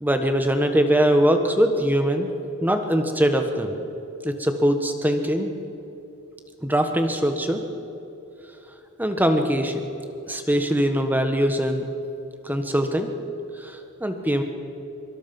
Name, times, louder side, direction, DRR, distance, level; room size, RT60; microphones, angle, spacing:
voice 1, 0.0-2.3 2.6-3.7 4.2-5.5 6.6-7.6 9.0-9.9 10.2-11.9 12.4-13.1 13.6-14.4, equal, 10° right, 6 dB, 1.4 m, -22 dB
24.0 x 23.5 x 5.5 m, 2.9 s
head